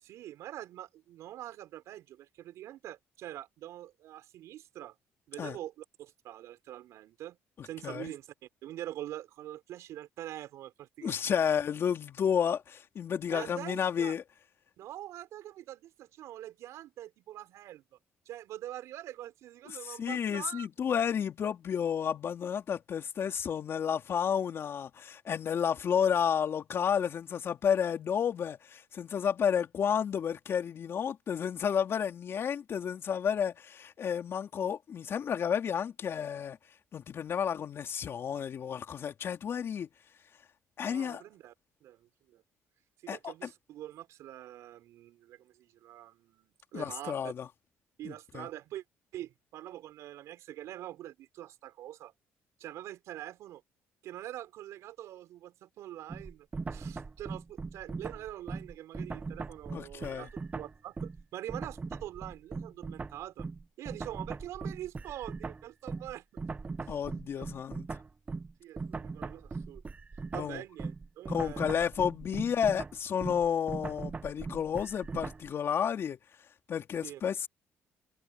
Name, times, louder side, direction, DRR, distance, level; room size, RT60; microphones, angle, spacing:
voice 1, 0.0-4.9 5.3-7.4 7.6-11.5 13.3-14.1 14.8-17.8 18.3-20.7 40.8-41.5 41.8-42.4 43.0-47.3 48.0-48.8 49.1-52.1 52.6-53.6 54.0-60.3 60.5-63.5 63.8-66.2 66.8-66.9 67.4-67.5 68.6-69.8 70.3-71.9 77.0-77.2, right 13 dB, 80° right, 5.8 m, -44 dB
voice 2, 7.6-8.1 11.0-14.2 19.6-36.6 36.9-39.9 40.8-41.2 43.1-43.3 46.7-47.5 48.0-48.5 59.7-60.3 66.9-67.9 70.3-70.6 71.3-76.2 76.7-77.5, left 8 dB, 55° left, 3.2 m, -31 dB
sound 1, 56.1-61.2 61.5-75.5, right 4 dB, 30° right, 1.4 m, -40 dB
supercardioid pair, 75°, 5 cm